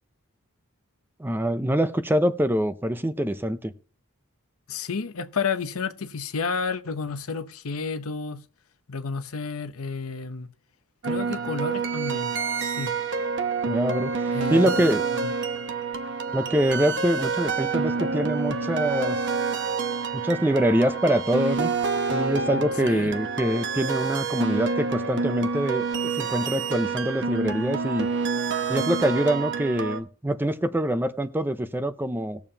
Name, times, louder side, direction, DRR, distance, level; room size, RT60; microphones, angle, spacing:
voice 1, 1.2-3.7 13.6-14.1 14.5-15.0 16.3-19.2 20.1-21.7 22.1-28.1 28.7-32.4, right 1 dB, 10° right, 0.5 m, -24 dB
voice 2, 4.7-8.4 8.9-10.5 11.0-12.9 14.3-14.7 15.1-15.3 22.5-23.1, left 5 dB, 75° left, 0.8 m, -31 dB
sound 1, 11.0-30.0, right 5 dB, 55° right, 0.9 m, -28 dB
19.0 x 7.0 x 2.8 m
head